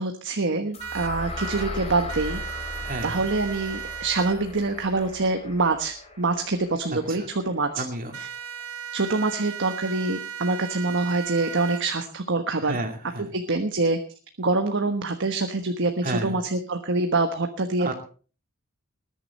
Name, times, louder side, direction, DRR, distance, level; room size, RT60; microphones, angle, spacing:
voice 1, 0.0-2.4 3.0-7.8 8.9-12.8 13.3-14.0 14.4-17.9, right 3 dB, 60° right, 5 dB, 1.3 m, -25 dB
sound 1, 0.7-8.7, left 1 dB, 30° left, 3.6 m, -38 dB
sound 2, 0.8-1.7 2.1-4.4 8.1-11.8, right 7 dB, 90° right, 1.5 m, -36 dB
voice 2, 2.8-3.2 6.9-7.3 7.7-8.2 12.6-13.3 16.0-16.4 17.8-17.9, right 2 dB, 40° right, 5 dB, 2.6 m, -32 dB
20.0 x 10.0 x 4.3 m, 0.40 s
head